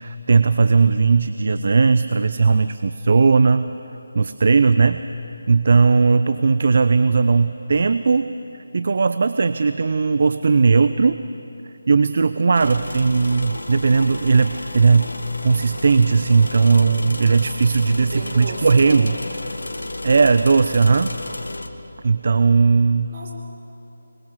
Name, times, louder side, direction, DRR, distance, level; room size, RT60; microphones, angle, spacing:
voice 1, 0.0-3.7 4.1-5.0 5.5-8.4 8.7-11.2 11.9-15.1 15.4-19.2 20.0-21.2 22.0-23.1, right 4 dB, 50° right, 12 dB, 0.6 m, -17 dB
sound 1, 12.5-21.7, left 2 dB, 85° left, 1.7 m, -32 dB
voice 2, 18.0-19.1 23.1-23.3, right 2 dB, 35° right, -1 dB, 4.3 m, -33 dB
26.0 x 22.0 x 6.5 m, 2.8 s
figure-of-eight pair, 160°, 0 cm